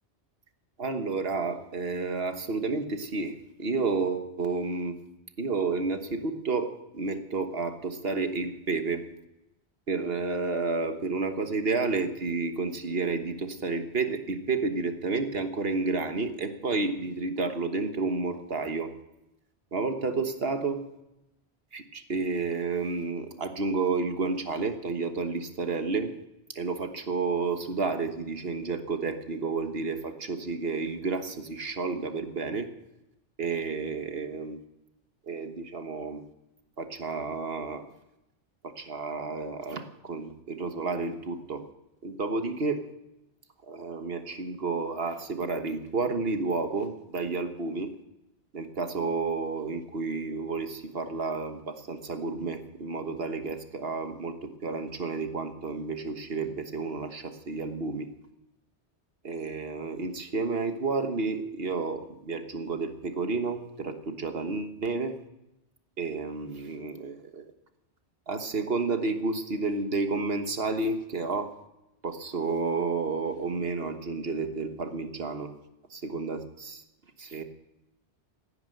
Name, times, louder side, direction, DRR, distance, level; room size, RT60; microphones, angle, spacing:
voice 1, 0.8-5.0 5.4-9.0 9.9-18.9 19.7-20.8 21.7-26.1 26.5-32.7 33.4-34.6 35.3-36.2 36.8-37.9 38.6-41.6 42.0-42.9 43.7-47.9 48.5-58.1 59.2-65.1 66.0-67.4 68.3-71.5 72.0-75.5 75.9-76.8 77.2-77.4, right 4 dB, 60° right, 8 dB, 1.5 m, -31 dB
16.5 x 9.8 x 7.8 m, 0.90 s
omnidirectional pair, 1.1 m